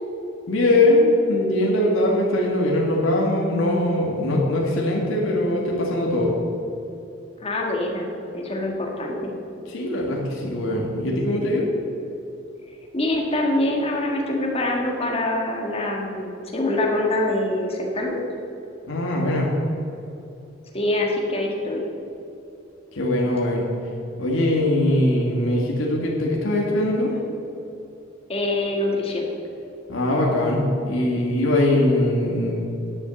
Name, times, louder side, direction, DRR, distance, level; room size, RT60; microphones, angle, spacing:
voice 1, 0.5-6.3 9.7-11.7 18.9-19.5 22.9-23.7 24.2-27.1 29.9-32.6, left 1 dB, 80° left, -2 dB, 1.9 m, -21 dB
voice 2, 7.4-9.3 12.9-18.2 20.7-21.9 28.3-29.3, left 1 dB, 30° left, 0 dB, 1.7 m, -24 dB
11.0 x 7.5 x 7.0 m, 2.8 s
head